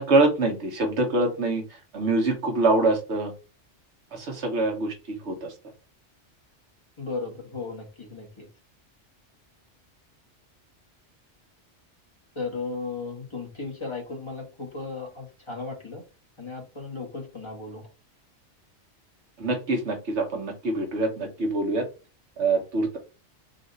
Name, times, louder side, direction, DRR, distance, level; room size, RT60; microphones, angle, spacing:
voice 1, 0.0-1.6 1.9-3.3 4.1-5.5 19.4-21.9 22.4-23.0, right 2 dB, 70° right, 2 dB, 1.4 m, -24 dB
voice 2, 7.0-8.5 12.3-16.0 16.4-17.9, left 4 dB, 25° left, -1 dB, 1.3 m, -35 dB
4.0 x 2.5 x 3.9 m, 0.31 s
omnidirectional pair, 1.2 m